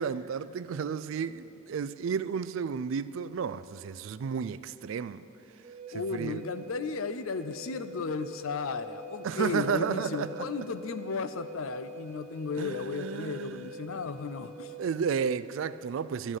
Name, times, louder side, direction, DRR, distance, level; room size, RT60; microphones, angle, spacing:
voice 1, 0.0-5.2 5.9-6.4 9.2-10.4 12.6-13.7 14.8-16.4, right 6 dB, 65° right, 0.3 m, -32 dB
Wind instrument woodwind instrument, 5.6-14.9, right 1 dB, 30° right, 0.8 m, -46 dB
voice 2, 5.9-14.7, left 4 dB, 75° left, 0.5 m, -34 dB
13.0 x 6.3 x 8.9 m
head